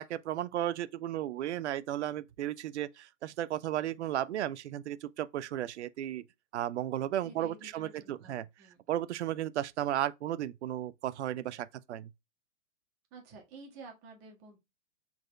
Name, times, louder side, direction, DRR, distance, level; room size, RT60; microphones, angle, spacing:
voice 1, 0.0-6.2 6.5-8.4 8.9-12.1, right 12 dB, 65° right, 0.5 m, -34 dB
voice 2, 7.2-8.8 13.1-14.6, right 3 dB, 35° right, 1.6 m, -51 dB
4.9 x 4.0 x 2.2 m
hypercardioid pair, 115°, 38 cm